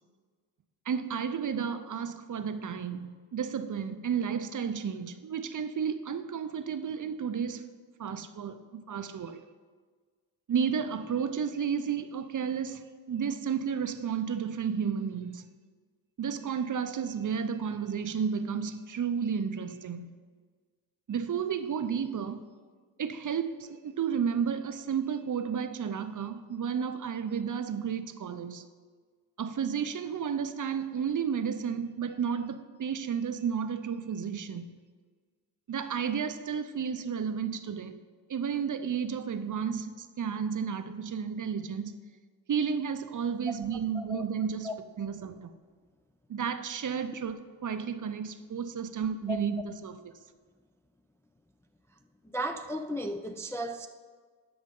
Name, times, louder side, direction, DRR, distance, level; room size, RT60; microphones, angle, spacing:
voice 1, 0.9-7.7 8.0-9.4 10.5-15.4 16.2-20.2 21.1-22.4 23.0-28.6 29.4-34.7 35.7-38.0 38.3-41.9 42.5-44.7 45.0-45.5 46.3-50.1, right 7 dB, 40° right, 10 dB, 0.6 m, -32 dB
voice 2, 43.9-44.3 44.6-44.8 49.3-49.4 52.3-53.9, equal, 5° left, 5 dB, 0.3 m, -34 dB
12.5 x 5.1 x 3.7 m, 1.5 s
supercardioid pair, 55°, 49 cm